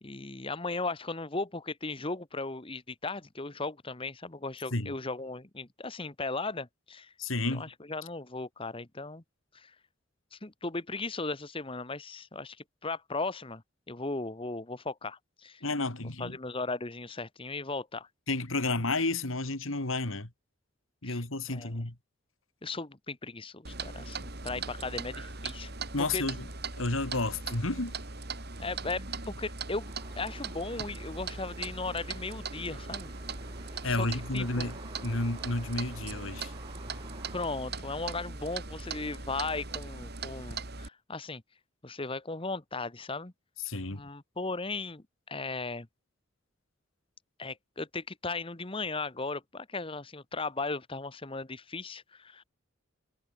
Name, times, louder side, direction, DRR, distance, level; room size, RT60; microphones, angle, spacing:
voice 1, 0.0-7.1 7.5-9.2 9.5-9.7 10.3-12.6 12.8-13.6 13.9-15.6 16.2-18.1 21.0-21.2 21.5-21.8 22.6-25.7 26.0-26.2 28.6-33.1 33.8-34.1 34.3-34.7 37.3-41.4 41.8-43.3 43.9-45.9 47.4-52.4, left 3 dB, 25° left, 1.3 m, -37 dB
voice 2, 7.2-7.7 15.6-16.4 18.3-20.3 21.0-21.9 25.9-26.5 26.8-27.9 33.8-36.5 43.6-44.0, left 2 dB, 80° left, 2.9 m, -31 dB
Clock, 23.6-40.9, right 4 dB, 50° right, 3.9 m, -40 dB
sound 1, 29.8-37.5, right 2 dB, 25° right, 4.4 m, -50 dB
head